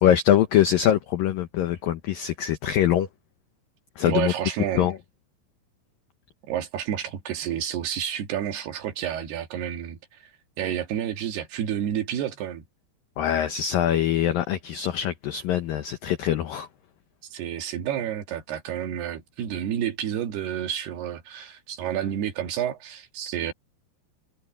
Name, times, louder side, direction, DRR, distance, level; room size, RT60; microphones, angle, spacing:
voice 1, 0.0-3.1 4.0-4.3 4.8-5.0 13.2-16.7, left 11 dB, 80° left, 2.0 m, -23 dB
voice 2, 4.1-4.9 6.5-10.0 10.6-12.7 17.3-23.5, right 10 dB, 65° right, 3.5 m, -30 dB
omnidirectional pair, 5.5 m